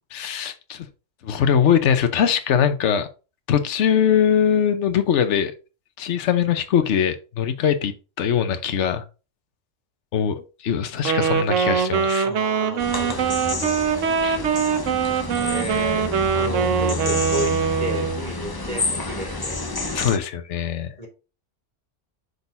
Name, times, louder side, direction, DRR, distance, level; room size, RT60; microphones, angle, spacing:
voice 1, 0.1-0.9 1.2-3.1 3.5-5.5 6.0-9.0 10.1-12.3 14.2-14.4 19.9-21.0, left 8 dB, 70° left, 1.1 m, -21 dB
Wind instrument woodwind instrument, 11.0-18.2, right 6 dB, 85° right, 1.1 m, -23 dB
voice 2, 12.2-13.7 15.4-19.6 21.0-21.1, right 1 dB, 30° right, 1.9 m, -33 dB
sound 1, 12.8-20.2, left 2 dB, 20° left, 0.7 m, -29 dB
6.5 x 4.1 x 5.3 m
omnidirectional pair, 1.3 m